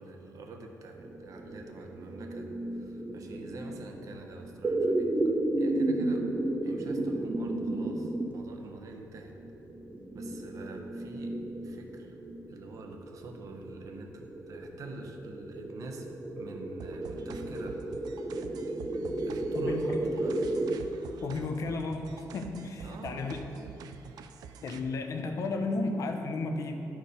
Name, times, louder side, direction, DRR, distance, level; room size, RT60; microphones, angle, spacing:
voice 1, 0.0-6.3 6.6-9.3 10.1-11.3 11.6-12.2 12.5-17.8 19.2-20.4 22.8-23.8, right 2 dB, 60° right, 3 dB, 0.9 m, -46 dB
sound 1, 0.9-20.8, right 2 dB, 20° right, 0.6 m, -33 dB
sound 2, 16.8-24.8, right 6 dB, 85° right, 0.5 m, -47 dB
voice 2, 21.2-23.4 24.6-26.8, left 3 dB, 55° left, 5 dB, 0.7 m, -33 dB
11.5 x 4.5 x 5.2 m, 2.7 s
cardioid pair, 160°, 7 cm